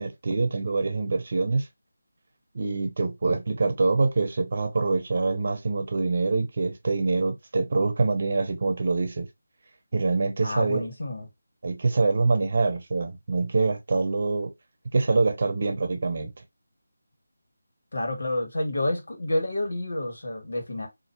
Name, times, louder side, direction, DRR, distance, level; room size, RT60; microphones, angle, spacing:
voice 1, 0.0-1.7 2.5-9.3 9.9-10.8 11.6-14.5 14.9-16.3, right 3 dB, 45° right, 0.8 m, -25 dB
voice 2, 10.4-11.3 17.9-20.9, left 1 dB, 70° left, 1.7 m, -29 dB
4.1 x 2.7 x 2.8 m
figure-of-eight pair, 170°, 0 cm